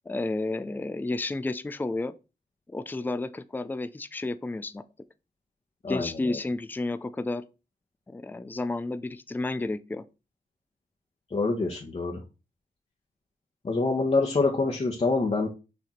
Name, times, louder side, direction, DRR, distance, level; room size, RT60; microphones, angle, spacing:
voice 1, 0.1-2.1 2.7-4.8 5.9-7.4 8.1-10.0, left 2 dB, 10° left, 0.4 m, -31 dB
voice 2, 5.8-6.4 11.3-12.2 13.6-15.5, left 3 dB, 40° left, 1.1 m, -26 dB
6.3 x 3.5 x 4.3 m
wide cardioid pair, 90°, 16 cm